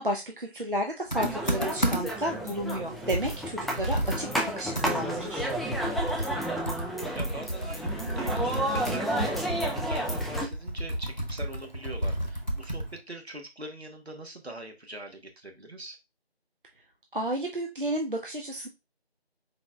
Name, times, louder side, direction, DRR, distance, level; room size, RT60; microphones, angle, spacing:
voice 1, 0.0-5.5 17.1-18.7, right 1 dB, 55° right, 1 dB, 0.6 m, -32 dB
Computer keyboard, 1.1-2.3 2.7-2.8 3.1-13.0, right 1 dB, 45° left, 0.7 m, -32 dB
sound 1, 1.1-10.5, equal, ahead, 0.4 m, -32 dB
voice 2, 5.9-6.6 7.1-16.0, right 1 dB, 75° right, 4 dB, 1.3 m, -42 dB
4.1 x 4.0 x 2.3 m, 0.24 s
figure-of-eight pair, 180°, 32 cm